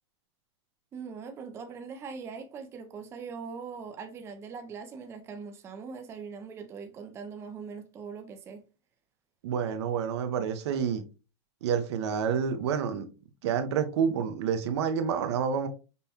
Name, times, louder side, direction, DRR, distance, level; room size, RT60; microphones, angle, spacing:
voice 1, 0.9-8.7, right 5 dB, 20° right, 0.4 m, -41 dB
voice 2, 9.4-11.0 11.6-13.0 13.4-15.7, right 7 dB, 70° right, 0.7 m, -28 dB
5.3 x 2.1 x 2.8 m
supercardioid pair, 140°, 15 cm